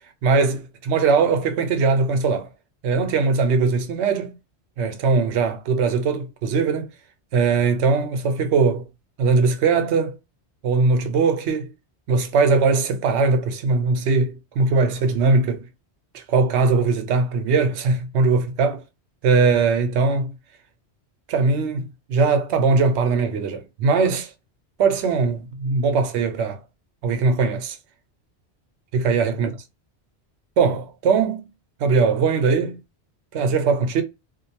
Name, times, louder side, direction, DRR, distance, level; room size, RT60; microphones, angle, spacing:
voice 1, 0.2-2.5 2.8-4.4 4.8-6.9 7.3-8.9 9.2-10.2 10.6-11.7 12.1-15.7 16.1-18.8 19.2-20.3 21.3-24.3 24.8-26.6 27.0-27.8 28.9-29.5 30.6-31.4 31.8-32.8 33.3-34.0, right 4 dB, 80° right, 0.9 m, -20 dB
2.5 x 2.2 x 2.7 m
omnidirectional pair, 1.1 m